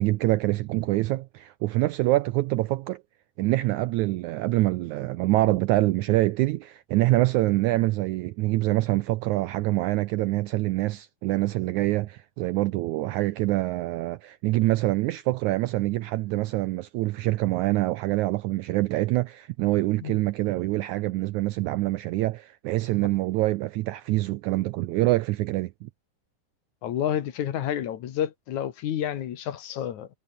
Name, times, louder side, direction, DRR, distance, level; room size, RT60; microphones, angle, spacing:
voice 1, 0.0-3.0 3.4-25.9, right 18 dB, 80° right, 1.7 m, -25 dB
voice 2, 26.8-30.1, left 10 dB, 65° left, 2.7 m, -29 dB
omnidirectional pair, 4.0 m